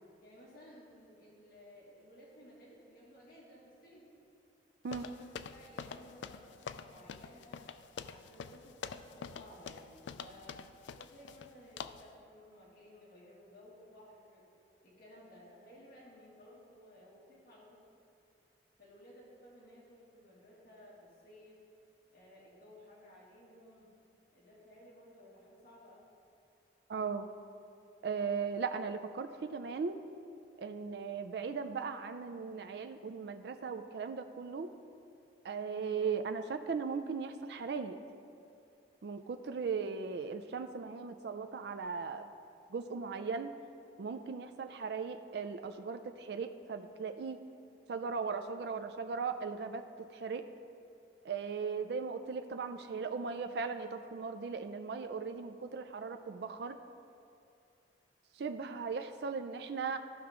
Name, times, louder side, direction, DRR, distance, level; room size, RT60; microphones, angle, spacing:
voice 1, 0.2-4.0 4.9-7.7 8.1-10.6 11.0-14.5 14.8-17.9 18.8-21.6 22.1-23.9 24.3-26.1, equal, 55° left, -7 dB, 2.2 m, -57 dB
sound 1, 4.9-11.5 11.8-12.1, left 6 dB, 85° left, 0.4 m, -46 dB
voice 2, 26.9-27.3 28.0-30.0 30.6-34.7 35.4-38.0 39.0-42.3 42.7-43.5 44.0-47.4 47.9-50.4 51.2-56.8 58.3-60.0, right 5 dB, 65° right, 7 dB, 0.4 m, -38 dB
14.0 x 5.8 x 3.7 m, 2.7 s
head